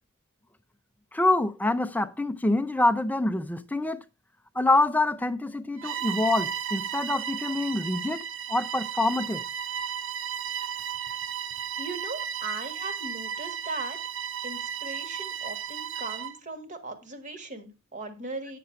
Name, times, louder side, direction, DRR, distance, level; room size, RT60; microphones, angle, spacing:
voice 1, 1.1-4.0 4.6-9.4, left 2 dB, 10° left, 0.5 m, -26 dB
Bowed string instrument, 5.8-16.4, right 8 dB, 60° right, 0.6 m, -34 dB
voice 2, 11.8-14.0 14.4-18.6, right 3 dB, 35° right, 1.5 m, -38 dB
9.1 x 6.8 x 4.4 m
head